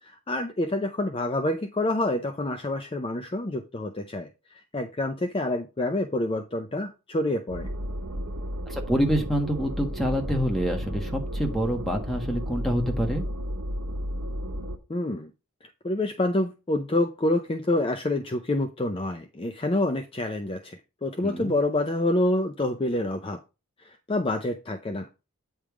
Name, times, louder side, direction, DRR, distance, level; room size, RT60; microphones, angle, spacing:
voice 1, 0.0-7.7 14.9-15.3 15.8-23.4 23.8-25.1, left 1 dB, 25° left, 6 dB, 0.5 m, -27 dB
sound 1, 7.5-14.8, equal, 80° right, 1.2 m, -33 dB
voice 2, 8.7-13.2 21.2-21.5, equal, ahead, 2 dB, 1.4 m, -27 dB
8.9 x 3.5 x 4.8 m, 0.29 s
head